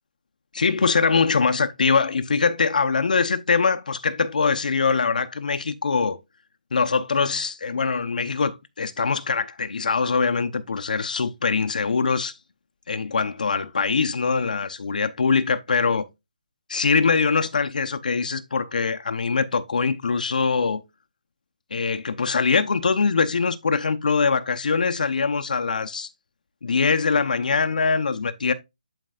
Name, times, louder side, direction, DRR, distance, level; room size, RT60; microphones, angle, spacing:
voice 1, 0.5-6.2 6.7-12.3 12.9-16.1 16.7-20.8 21.7-26.1 26.6-28.5, left 5 dB, 65° left, 0.8 m, -23 dB
11.5 x 4.5 x 2.4 m
hypercardioid pair, 160°, 5 cm